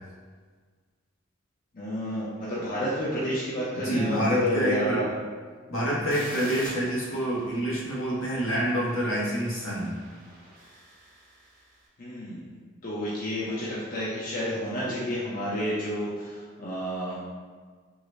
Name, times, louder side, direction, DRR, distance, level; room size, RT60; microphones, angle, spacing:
voice 1, 1.7-5.1 12.0-17.2, equal, 45° left, -8 dB, 0.5 m, -30 dB
voice 2, 3.7-5.0 5.7-10.0, equal, 85° left, -6 dB, 1.0 m, -27 dB
sound 1, 6.1-11.8, right 1 dB, 45° right, 0.7 m, -47 dB
3.7 x 2.1 x 3.0 m, 1.5 s
head